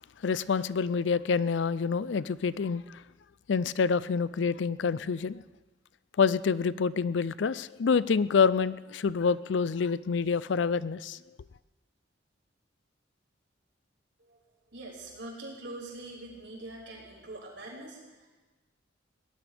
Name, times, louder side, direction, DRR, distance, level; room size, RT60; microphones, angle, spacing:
voice 1, 0.2-3.0 3.5-5.4 6.2-11.2, left 5 dB, 70° left, 0.4 m, -27 dB
voice 2, 14.7-18.3, right 2 dB, 70° right, 5.6 m, -43 dB
22.0 x 18.0 x 3.5 m
head